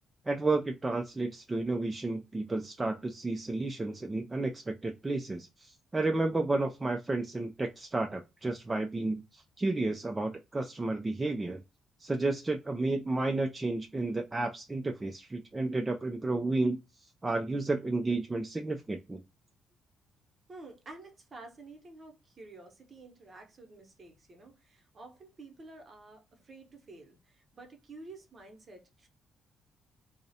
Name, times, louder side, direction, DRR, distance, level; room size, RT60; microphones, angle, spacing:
voice 1, 0.3-11.6 12.0-19.2, right 2 dB, 20° right, 0.3 m, -32 dB
voice 2, 20.5-29.1, right 2 dB, 40° right, 0.8 m, -50 dB
2.4 x 2.0 x 2.7 m
cardioid pair, 90°, 0 cm